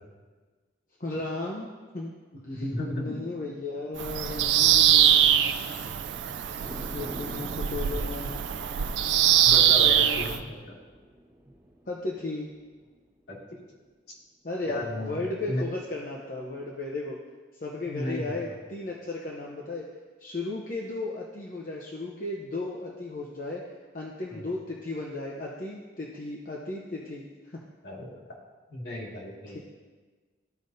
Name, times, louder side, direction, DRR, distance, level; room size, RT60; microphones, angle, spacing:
voice 1, 1.0-2.1 2.5-2.7 2.9-5.3 6.7-8.3 9.8-10.4 11.9-12.5 14.4-17.2 17.5-19.9 20.2-23.6 23.9-27.3 29.5-29.6, left 2 dB, 50° left, -3 dB, 0.8 m, -35 dB
voice 2, 2.5-3.2 9.4-10.7 13.3-13.4 14.6-15.1 15.5-15.6 17.8-18.4 24.3-24.5 27.8-28.1 28.7-29.6, left 1 dB, 65° left, -4 dB, 2.1 m, -34 dB
Bird vocalization bird call bird song, 4.0-10.4, right 10 dB, 85° right, 0.4 m, -23 dB
sound 1, 6.5-13.0 13.4-13.5, right 1 dB, 15° right, 1.2 m, -46 dB
14.0 x 5.1 x 2.7 m, 1.4 s
head